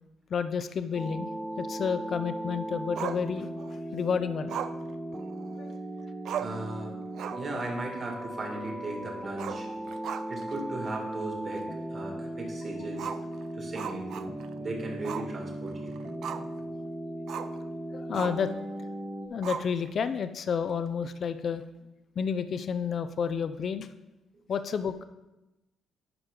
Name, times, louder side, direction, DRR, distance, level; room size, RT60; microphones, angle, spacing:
voice 1, 0.3-1.3 1.6-3.5 3.9-4.6 5.6-5.8 17.4-17.5 17.9-18.5 19.3-21.6 22.2-23.9 24.5-25.0, left 6 dB, 55° left, 11 dB, 0.4 m, -30 dB
sound 1, 0.9-19.3, right 1 dB, 5° right, 0.7 m, -37 dB
Growling, 3.0-3.8 4.5-5.7 6.0-6.1 6.3-6.7 7.1-7.6 7.9-8.0 9.3-10.5 10.9-11.0 11.5-11.6 12.9-14.6 15.0-15.3 15.7-16.6 17.3-17.6 18.1-18.5 19.4-20.0, right 8 dB, 75° right, 0.4 m, -38 dB
voice 2, 6.4-7.0 7.3-9.7 10.3-13.1 13.5-16.0 17.4-17.6, right 2 dB, 45° right, 0 dB, 2.2 m, -37 dB
10.5 x 5.0 x 3.8 m, 0.98 s
cardioid pair, 90°, 0 cm